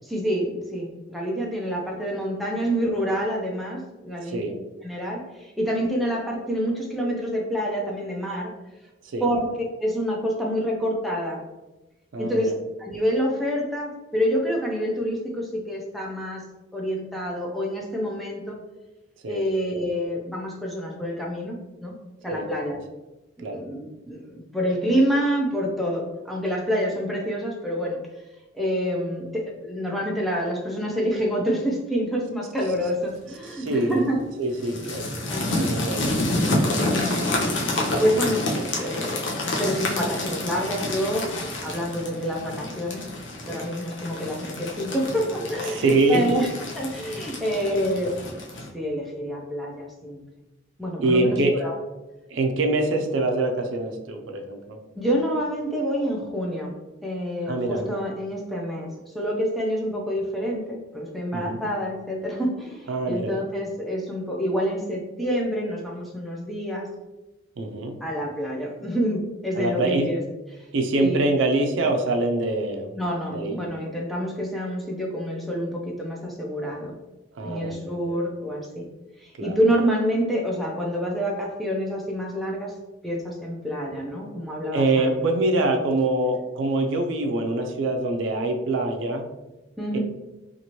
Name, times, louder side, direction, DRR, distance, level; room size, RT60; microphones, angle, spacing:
voice 1, 0.0-4.4 4.8-8.5 9.2-11.4 12.2-12.5 12.8-16.4 16.7-18.6 19.3-21.6 21.8-21.9 22.2-22.8 23.4-28.0 28.5-34.2 34.6-34.8 35.3-35.5 36.8-37.3 37.7-41.3 41.6-43.0 43.5-46.5 46.7-48.1 48.7-50.2 50.8-51.8 55.0-56.7 57.0-58.9 59.1-66.9 68.0-70.2 70.5-70.6 71.0-71.2 73.0-77.0 77.4-78.9 79.2-82.7 83.0-85.2 89.8-90.0, equal, ahead, -3 dB, 0.4 m, -27 dB
voice 2, 4.2-4.5 9.0-9.3 12.1-12.5 19.2-19.4 22.3-22.4 23.4-23.6 33.4-34.1 34.4-36.2 36.6-36.9 45.7-46.3 51.0-51.6 52.3-54.8 57.5-57.9 61.3-61.6 62.9-63.3 67.6-68.0 69.5-70.1 70.7-72.9 73.3-73.6 77.4-78.0 79.4-79.6 84.7-89.3 89.9-90.0, right 2 dB, 80° right, 3 dB, 0.4 m, -24 dB
sound 1, 33.3-33.7 34.6-48.7, left 1 dB, 70° left, 0.6 m, -29 dB
2.8 x 2.5 x 2.9 m, 1.1 s
head